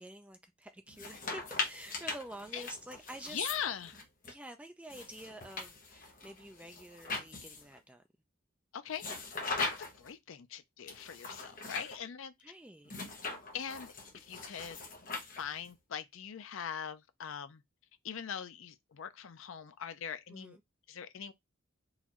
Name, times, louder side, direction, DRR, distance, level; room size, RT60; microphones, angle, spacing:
voice 1, 0.0-3.5 4.3-8.0 9.5-9.6 12.4-12.9 20.3-20.6, right 1 dB, 5° right, 0.3 m, -48 dB
sound 1, 0.9-4.3 4.9-7.8 8.9-10.1 10.9-12.0 12.9-15.7, left 3 dB, 40° left, 1.0 m, -41 dB
voice 2, 3.3-3.9 8.7-9.0 9.6-12.3 13.5-14.8 15.4-17.6 18.0-20.6 20.9-21.3, left 8 dB, 65° left, 0.5 m, -41 dB
3.9 x 2.6 x 3.0 m
head